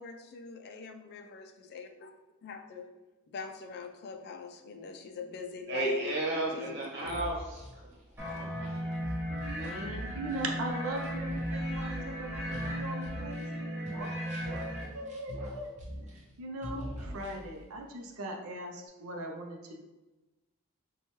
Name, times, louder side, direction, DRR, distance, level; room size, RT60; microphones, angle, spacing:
voice 1, 0.0-2.1 2.4-2.9 3.3-6.1 6.5-7.2, left 6 dB, 50° left, 5 dB, 0.4 m, -42 dB
voice 2, 5.7-8.9, right 2 dB, 55° right, -4 dB, 1.1 m, -34 dB
sound 1, 7.0-13.6 13.8-16.3 16.6-17.7, equal, 35° right, 0.8 m, -43 dB
sound 2, 8.2-14.8, equal, 10° right, 1.1 m, -36 dB
voice 3, 9.3-15.7 16.1-19.8, right 1 dB, 80° right, 2 dB, 0.5 m, -40 dB
4.3 x 2.2 x 2.9 m, 1.1 s
head